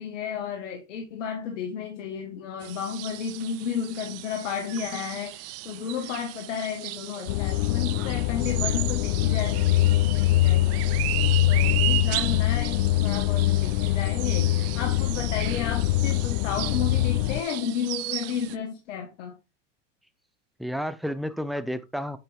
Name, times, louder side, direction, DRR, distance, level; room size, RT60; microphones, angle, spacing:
voice 1, 0.0-10.9 11.5-19.4, left 7 dB, 80° left, 1.6 m, -33 dB
sound 1, 2.6-18.6, right 19 dB, 45° right, 0.5 m, -35 dB
sound 2, 7.3-17.4, left 15 dB, 65° left, 0.6 m, -23 dB
voice 2, 20.6-22.2, equal, ahead, 0.6 m, -32 dB
9.0 x 5.0 x 3.5 m
supercardioid pair, 110°, 36 cm